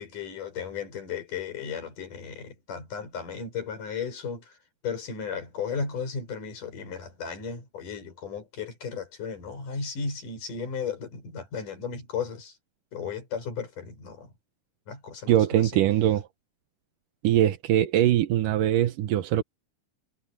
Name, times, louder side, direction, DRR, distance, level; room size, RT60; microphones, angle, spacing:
voice 1, 0.0-4.5 4.8-12.5 12.9-14.3 14.9-15.7, left 6 dB, 80° left, 7.3 m, -35 dB
voice 2, 15.3-16.3 17.2-19.4, right 12 dB, 85° right, 2.7 m, -22 dB
omnidirectional pair, 3.7 m